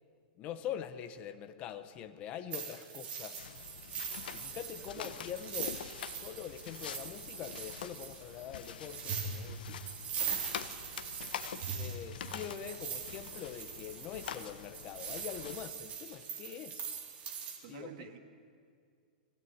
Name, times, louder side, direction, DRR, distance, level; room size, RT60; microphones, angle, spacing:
voice 1, 0.4-3.5 4.3-5.8 6.1-9.9 11.7-16.8 17.7-18.1, left 9 dB, 25° left, 9 dB, 1.0 m, -44 dB
sound 1, 2.5-17.6, right 7 dB, 25° right, 3.7 m, -42 dB
sound 2, 3.4-15.7, left 8 dB, 75° left, 1.2 m, -46 dB
voice 2, 17.6-18.2, right 10 dB, 45° right, 4 dB, 2.6 m, -48 dB
24.5 x 16.5 x 9.4 m, 2.3 s
supercardioid pair, 160°, 5 cm